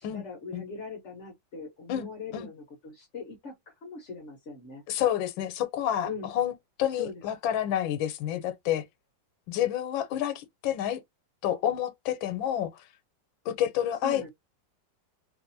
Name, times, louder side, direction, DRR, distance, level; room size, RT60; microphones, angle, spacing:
voice 1, 0.0-3.5 3.8-4.8 6.0-6.3 6.9-7.1 14.0-14.3, left 4 dB, 50° left, 0.9 m, -41 dB
voice 2, 4.9-6.5 6.8-8.8 9.5-11.0 11.4-12.8 13.5-14.3, left 11 dB, 85° left, 1.4 m, -29 dB
3.2 x 2.6 x 2.5 m
omnidirectional pair, 2.1 m